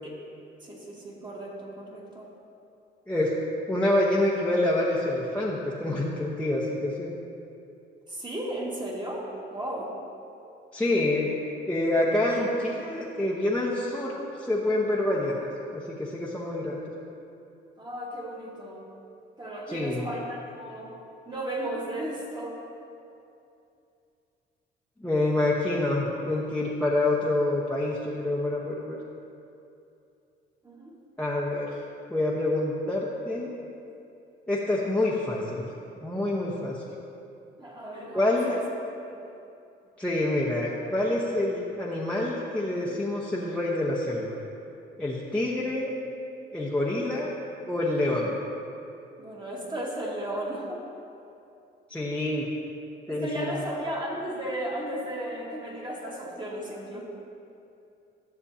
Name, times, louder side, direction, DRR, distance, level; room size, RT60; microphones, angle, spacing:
voice 1, 0.6-2.3 8.1-9.9 17.8-18.8 19.4-20.9 21.3-22.6 30.6-31.0 37.6-38.6 39.1-39.2 49.2-50.9 53.1-57.0, right 1 dB, 20° right, -3 dB, 1.8 m, -35 dB
voice 2, 3.7-7.1 10.7-11.3 11.7-16.9 19.7-20.1 25.0-29.0 31.2-31.8 32.1-33.5 34.5-35.7 36.0-36.8 38.1-38.5 40.0-44.4 45.0-45.9 46.5-47.4 47.6-48.4 51.9-52.5 53.1-53.6, left 1 dB, 5° left, -6 dB, 0.9 m, -27 dB
12.5 x 6.9 x 2.8 m, 2.7 s
cardioid pair, 90°, 20 cm